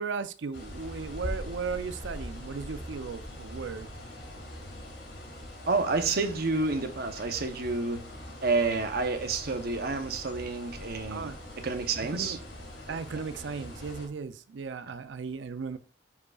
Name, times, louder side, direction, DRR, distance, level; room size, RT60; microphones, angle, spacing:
voice 1, 0.0-3.9 11.1-11.4 12.0-12.4 12.9-15.8, right 5 dB, 85° right, 0.4 m, -36 dB
sound 1, 0.5-14.1, left 1 dB, 75° left, 3.0 m, -42 dB
voice 2, 5.7-8.0 8.4-12.4 13.1-13.2, right 3 dB, 60° right, 0.8 m, -29 dB
9.5 x 5.0 x 2.3 m
head